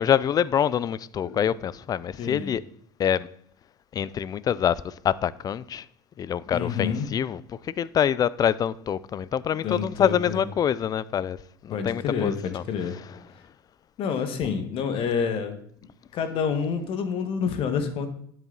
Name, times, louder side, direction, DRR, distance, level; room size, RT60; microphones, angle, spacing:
voice 1, 0.0-2.6 3.0-3.3 3.9-5.9 6.2-12.6 12.9-13.2, left 9 dB, 35° left, 0.5 m, -26 dB
voice 2, 2.2-2.5 6.5-7.1 9.6-10.4 11.7-13.0 14.0-15.6 16.1-18.1, left 6 dB, 55° left, 1.7 m, -28 dB
11.0 x 7.3 x 4.1 m
hypercardioid pair, 85°, 11 cm